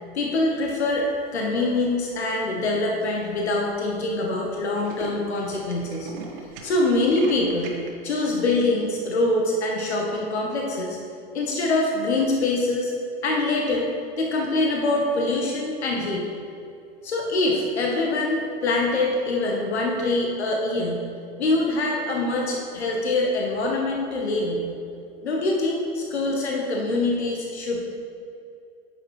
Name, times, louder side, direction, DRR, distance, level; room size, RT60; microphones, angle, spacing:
voice 1, 0.1-6.1 6.6-7.8 8.0-11.0 11.3-12.9 13.2-13.9 14.2-16.3 17.0-21.0 21.4-24.7 25.2-27.9, left 2 dB, 85° left, -1 dB, 1.2 m, -24 dB
Tools, 1.8-2.3 2.9-3.0 3.2-3.3 3.5-3.7 4.0-4.1 4.4-7.9, right 5 dB, 60° right, 1.4 m, -39 dB
9.3 x 6.5 x 3.1 m, 2.5 s
hypercardioid pair, 110°, 32 cm